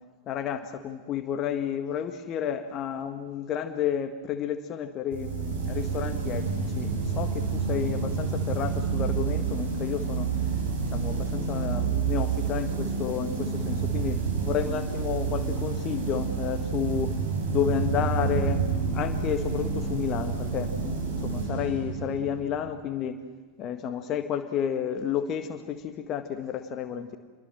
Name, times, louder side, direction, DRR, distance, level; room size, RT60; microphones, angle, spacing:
voice 1, 0.3-10.3 10.9-17.1 17.5-18.6 18.9-23.2 23.6-27.2, left 9 dB, 35° left, 8 dB, 1.7 m, -31 dB
sound 1, 5.1-22.6, right 5 dB, 55° right, 7.7 m, -29 dB
28.0 x 23.0 x 7.7 m, 1.4 s
figure-of-eight pair, 90°, 0 cm